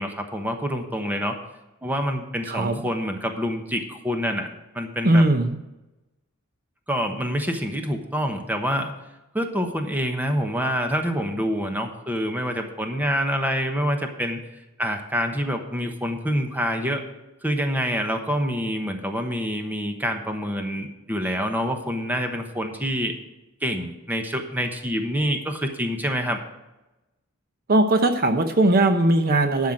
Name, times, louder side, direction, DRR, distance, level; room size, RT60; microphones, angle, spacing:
voice 1, 0.0-1.4 1.8-4.5 4.7-5.2 6.9-8.9 9.3-14.4 14.8-17.0 17.4-23.1 23.6-26.4, equal, 10° right, 5 dB, 1.1 m, -26 dB
voice 2, 2.5-2.8 5.0-5.6 27.7-29.7, right 2 dB, 45° right, 7 dB, 0.8 m, -19 dB
11.5 x 5.7 x 7.6 m, 1.0 s
head